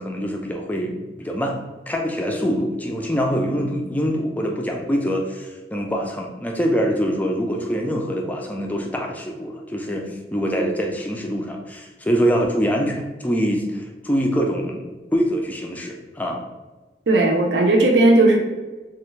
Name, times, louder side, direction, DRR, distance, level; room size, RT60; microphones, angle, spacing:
voice 1, 0.0-1.6 1.9-14.8 15.1-16.5, equal, 10° left, 1 dB, 0.3 m, -24 dB
voice 2, 17.1-18.4, right 2 dB, 80° right, 2 dB, 0.6 m, -15 dB
3.2 x 2.3 x 3.1 m, 1.2 s
head